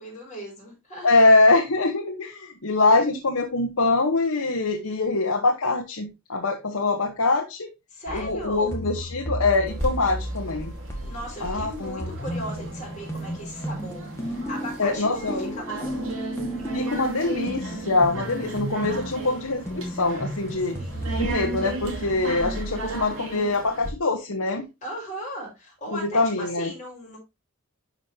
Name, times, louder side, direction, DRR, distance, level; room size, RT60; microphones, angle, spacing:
voice 1, 0.0-1.1 7.9-8.8 11.0-16.0 20.6-21.1 24.8-27.2, equal, 35° left, -2 dB, 5.2 m, -37 dB
voice 2, 1.0-7.7 8.1-10.7 11.4-12.1 14.8-15.5 16.7-20.7 21.2-24.7 26.0-26.7, left 3 dB, 75° left, 2 dB, 1.2 m, -23 dB
sound 1, 8.1-23.0, right 1 dB, 15° left, 1.7 m, -34 dB
sound 2, 9.7-23.9, right 2 dB, 65° right, 2.5 m, -36 dB
11.0 x 5.2 x 2.8 m, 0.24 s
head